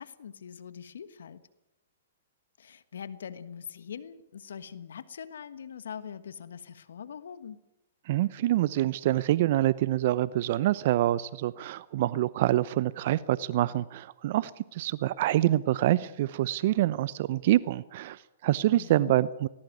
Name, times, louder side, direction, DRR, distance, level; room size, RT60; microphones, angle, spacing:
voice 1, 0.0-1.4 2.6-7.6 18.7-19.2, left 7 dB, 75° left, 15 dB, 1.4 m, -42 dB
voice 2, 8.1-19.5, right 14 dB, 55° right, 19 dB, 0.7 m, -26 dB
19.5 x 19.5 x 9.4 m, 0.91 s
hypercardioid pair, 125°, 0 cm